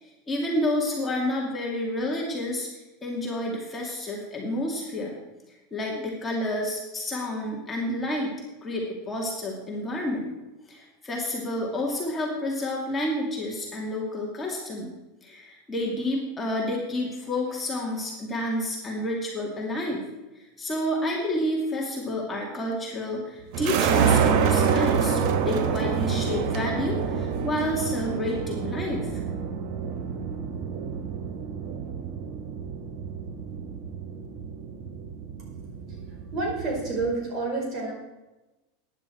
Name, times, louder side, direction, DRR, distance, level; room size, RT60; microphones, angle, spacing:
voice 1, 0.0-5.2 5.7-8.3 8.6-10.3 10.7-14.9 15.2-20.1 20.3-29.1, left 1 dB, 15° left, -2 dB, 2.4 m, -30 dB
sound 1, 23.5-37.1, right 7 dB, 55° right, 1.3 m, -27 dB
voice 2, 36.3-37.9, right 3 dB, 40° right, -1 dB, 5.2 m, -29 dB
14.5 x 10.5 x 4.5 m, 1.1 s
supercardioid pair, 140°, 0 cm